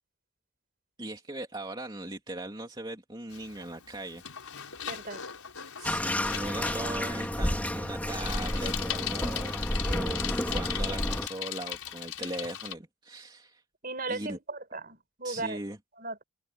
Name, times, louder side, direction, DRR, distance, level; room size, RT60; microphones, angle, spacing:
voice 1, 1.0-4.2 5.8-13.6 14.1-14.4 15.2-15.8, right 1 dB, 20° right, 3.0 m, -39 dB
Bicycle, 3.3-12.7, left 10 dB, 80° left, 5.2 m, -39 dB
voice 2, 4.9-5.2 13.8-15.6 16.0-16.2, right 3 dB, 40° right, 5.6 m, -37 dB
Bathtub (filling or washing), 5.8-11.3, equal, 5° left, 2.7 m, -31 dB
head